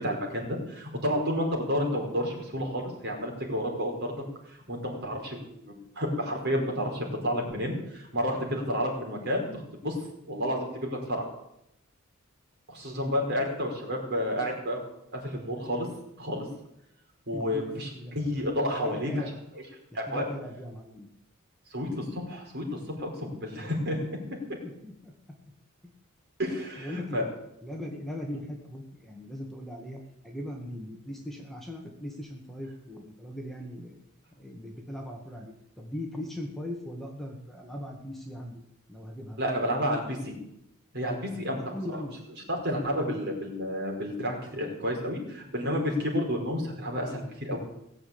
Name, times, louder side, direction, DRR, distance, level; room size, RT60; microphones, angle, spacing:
voice 1, 0.0-10.0 10.3-11.3 12.7-14.8 15.1-15.9 16.2-16.5 17.3-19.2 19.9-20.3 21.7-24.2 26.4-27.2 39.4-40.3 40.9-41.7 42.5-47.6, equal, 50° right, 0 dB, 5.1 m, -30 dB
voice 2, 17.3-18.1 18.6-19.3 20.1-21.1 24.6-25.1 26.8-27.3 27.6-34.0 34.3-38.6 38.9-39.4 41.3-42.2 42.8-43.2, equal, ahead, 0 dB, 2.0 m, -39 dB
18.5 x 7.6 x 8.7 m, 0.79 s
head